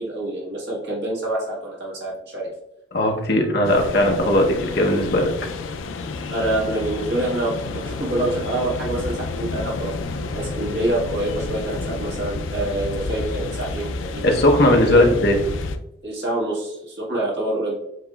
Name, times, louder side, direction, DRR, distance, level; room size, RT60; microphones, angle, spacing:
voice 1, 0.0-2.5 6.3-9.9 10.3-14.4 14.9-15.1 16.0-17.7, right 1 dB, 55° right, -5 dB, 1.7 m, -26 dB
voice 2, 2.9-5.3 14.2-15.4, left 1 dB, 55° left, 1 dB, 0.9 m, -18 dB
sound 1, 3.6-15.8, left 3 dB, 90° left, 0.4 m, -30 dB
7.6 x 2.8 x 2.3 m, 0.84 s
head